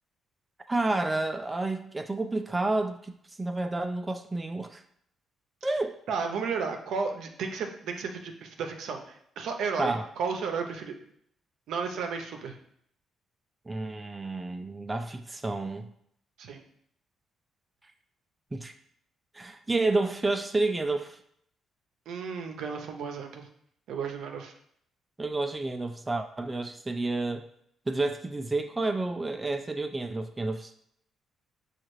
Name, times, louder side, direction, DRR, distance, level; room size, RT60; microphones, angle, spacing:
voice 1, 0.7-4.8 5.6-6.0 9.8-10.0 13.7-15.9 18.5-18.7 19.3-21.2 25.2-27.4 27.9-30.7, right 2 dB, 20° right, 6 dB, 0.3 m, -30 dB
voice 2, 6.1-11.0 11.7-12.6 16.4-16.6 22.1-23.5 23.9-24.5, right 5 dB, 80° right, 4 dB, 0.6 m, -33 dB
6.4 x 2.4 x 3.1 m, 0.69 s
cardioid pair, 90°, 0 cm